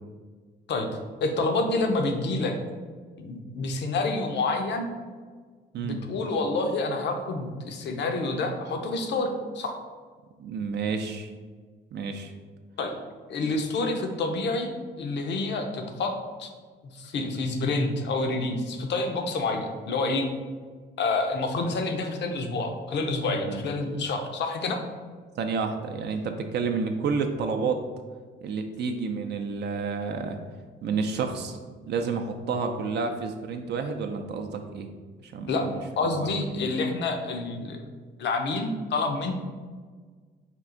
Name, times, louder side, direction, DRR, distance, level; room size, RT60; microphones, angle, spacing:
voice 1, 1.2-2.5 3.2-4.9 5.8-9.7 12.8-12.9 13.3-14.7 15.0-16.1 16.4-16.5 16.9-20.3 21.0-24.8 35.5-35.7 36.0-37.8 38.2-39.3, left 3 dB, 65° left, 4 dB, 0.6 m, -28 dB
voice 2, 10.4-11.3 11.9-12.3 23.5-23.6 25.4-27.8 28.4-30.4 30.8-31.6 31.9-34.9 35.2-35.8 36.0-36.5, right 5 dB, 60° right, 5 dB, 0.4 m, -30 dB
4.4 x 2.4 x 3.7 m, 1.5 s
cardioid pair, 90°, 20 cm